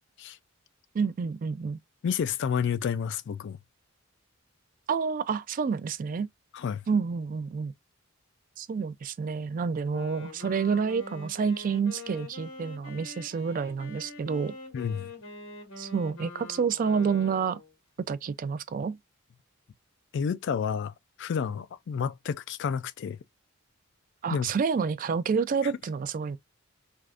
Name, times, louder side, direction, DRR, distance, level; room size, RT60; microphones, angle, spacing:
voice 1, 0.9-1.8 4.9-6.3 6.9-7.7 8.6-14.5 15.8-17.6 18.1-19.0 24.2-26.4, right 5 dB, 40° right, 0.3 m, -29 dB
voice 2, 2.0-3.6 6.5-6.8 14.7-15.1 20.1-20.9 21.2-23.2 24.3-24.5 25.6-25.7, left 7 dB, 60° left, 0.3 m, -30 dB
Wind instrument woodwind instrument, 9.8-17.7, left 3 dB, 90° left, 1.7 m, -44 dB
3.4 x 2.5 x 2.4 m
head